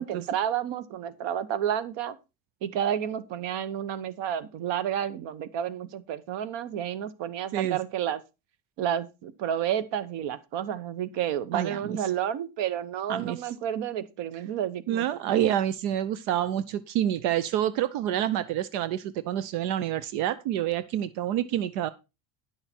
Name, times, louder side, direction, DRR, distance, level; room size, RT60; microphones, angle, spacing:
voice 1, 0.0-2.2 2.6-8.2 8.8-15.0, right 10 dB, 60° right, 1.0 m, -30 dB
voice 2, 11.5-12.0 13.1-13.4 14.9-21.9, right 11 dB, 85° right, 0.8 m, -28 dB
10.5 x 6.5 x 4.4 m
cardioid pair, 150°, 50 cm